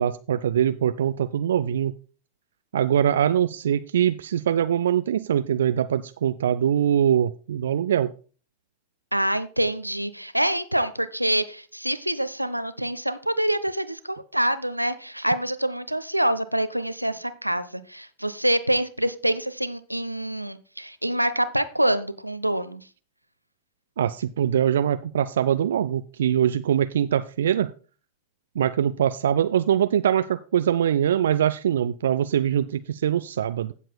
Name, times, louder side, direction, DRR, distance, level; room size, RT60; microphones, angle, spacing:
voice 1, 0.0-1.9 2.7-8.1 24.0-27.7 28.6-33.7, right 9 dB, 65° right, 13 dB, 0.4 m, -23 dB
voice 2, 9.1-22.8, right 1 dB, 90° right, 13 dB, 0.8 m, -26 dB
16.0 x 7.4 x 2.3 m, 0.37 s
figure-of-eight pair, 90°, 0 cm